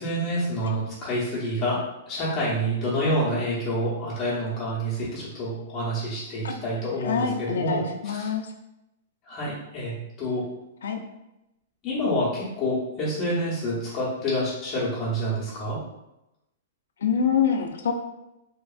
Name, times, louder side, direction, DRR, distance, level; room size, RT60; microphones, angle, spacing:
voice 1, 0.0-7.8 8.1-8.3 9.3-10.5 11.8-15.8, equal, 25° left, -8 dB, 0.8 m, -28 dB
voice 2, 7.0-8.5 10.8-11.0 17.0-17.9, left 6 dB, 90° left, 4 dB, 0.4 m, -25 dB
2.8 x 2.4 x 2.3 m, 0.91 s
hypercardioid pair, 165°, 0 cm